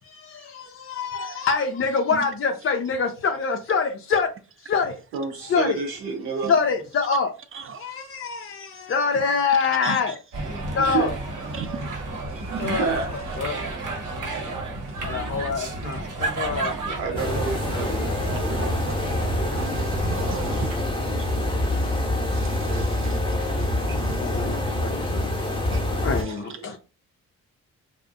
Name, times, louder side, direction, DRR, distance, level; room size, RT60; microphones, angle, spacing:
voice 1, 0.0-4.3 4.6-5.0 5.4-5.8 6.4-7.3 7.8-10.2 10.7-11.1 12.6-12.9 13.4-13.6 15.0-17.0 23.8-25.5 26.0-26.8, left 5 dB, 35° left, 0.5 m, -25 dB
voice 2, 1.1-1.5 2.1-2.2 6.4-6.5 7.5-8.9 9.8-10.2 11.5-11.9 12.3-12.7 14.1-15.1 15.9-16.4 18.3-20.7 21.2-26.8, right 6 dB, 35° right, 0.5 m, -41 dB
voice 3, 5.1-6.5 10.8-11.1 11.5-11.7 12.6-13.1 17.0-18.7 19.8-20.9 22.5-22.8 24.3-24.9 25.9-26.5, right 5 dB, 85° right, 0.7 m, -31 dB
sound 1, 10.3-20.6, right 2 dB, 55° right, 0.9 m, -32 dB
sound 2, 17.2-26.2, left 1 dB, 15° left, 0.8 m, -26 dB
2.4 x 2.0 x 2.5 m
hypercardioid pair, 40°, 38 cm